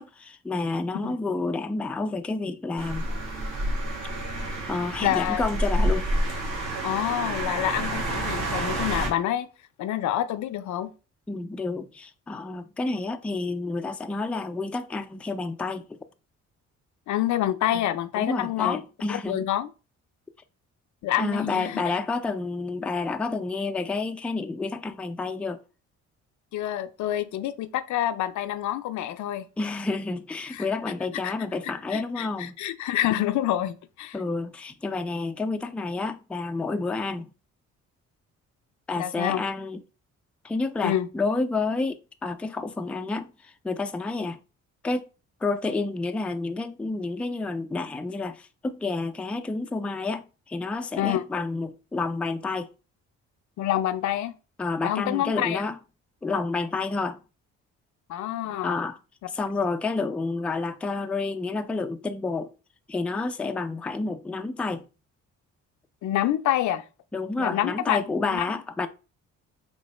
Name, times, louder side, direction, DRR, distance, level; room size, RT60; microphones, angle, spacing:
voice 1, 0.0-3.1 4.7-6.1 11.3-16.0 17.7-17.8 18.2-19.5 21.1-25.6 29.6-32.5 34.1-37.3 38.9-39.8 40.4-44.4 44.8-45.0 45.4-52.7 54.6-55.8 56.2-57.2 58.6-59.0 59.3-62.5 62.9-64.8 67.1-68.9, left 3 dB, 5° left, 0.3 m, -29 dB
sound 1, 2.8-9.1, right 1 dB, 70° right, 1.7 m, -28 dB
voice 2, 5.0-5.4 6.8-9.5 9.8-10.9 17.1-18.8 19.1-19.7 21.0-21.8 26.5-29.4 30.5-30.6 31.2-31.3 31.9-34.2 39.0-39.4 40.8-41.1 51.0-51.2 53.6-54.3 54.8-55.6 58.1-58.8 66.0-66.8 67.4-68.5, left 12 dB, 70° left, 0.5 m, -27 dB
3.6 x 3.0 x 4.2 m
cardioid pair, 90°, 30 cm